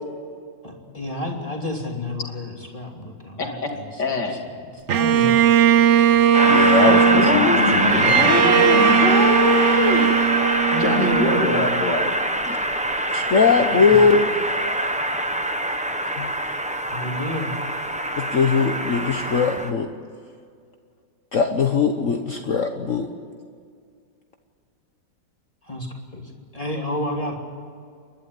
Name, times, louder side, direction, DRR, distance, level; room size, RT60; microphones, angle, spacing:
voice 1, 0.6-4.2 4.9-5.6 6.9-9.0 10.7-11.8 13.8-14.0 16.9-17.5 25.7-26.2 26.5-27.3, left 1 dB, 20° left, 0 dB, 2.7 m, -29 dB
voice 2, 3.4-3.7 4.0-4.4 7.1-7.6 8.0-10.1 10.8-12.1, left 2 dB, 65° left, 2 dB, 3.3 m, -24 dB
Bowed string instrument, 4.9-12.1, right 8 dB, 55° right, 0.8 m, -18 dB
Train, 6.3-19.7, right 1 dB, 5° right, 0.7 m, -23 dB
voice 3, 6.4-8.3 12.5-12.6 13.1-14.3 16.2-16.3 18.2-19.9 21.3-23.1, left 5 dB, 50° left, 5 dB, 1.3 m, -20 dB
29.0 x 12.0 x 9.6 m, 2.2 s
omnidirectional pair, 1.9 m